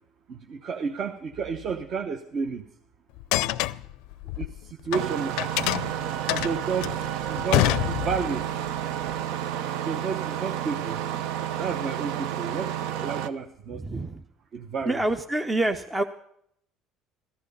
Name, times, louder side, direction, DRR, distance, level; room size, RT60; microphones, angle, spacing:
voice 1, 0.3-2.7 4.4-5.5 6.3-8.5 9.8-11.0 11.5-14.0 14.5-15.0, right 5 dB, 35° right, 7 dB, 0.8 m, -32 dB
sound 1, 3.2-5.0 5.4-8.4, left 17 dB, 75° left, 0.5 m, -26 dB
Engine starting, 4.9-13.3, right 11 dB, 70° right, 0.8 m, -31 dB
voice 2, 13.7-14.2 14.8-16.0, right 1 dB, 10° right, 8 dB, 0.5 m, -27 dB
14.0 x 14.0 x 5.4 m, 0.70 s
cardioid pair, 170°, 0 cm